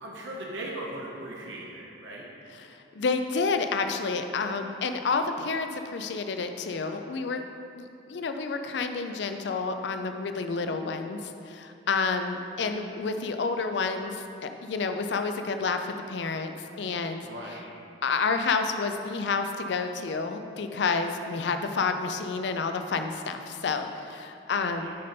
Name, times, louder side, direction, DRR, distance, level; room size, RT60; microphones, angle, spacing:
voice 1, 0.0-2.3 17.2-17.7 24.7-24.9, right 1 dB, 75° right, -3 dB, 0.8 m, -38 dB
voice 2, 2.5-7.5 7.7-17.3 18.0-24.9, left 4 dB, 65° left, 7 dB, 0.4 m, -29 dB
6.4 x 5.3 x 4.3 m, 2.7 s
head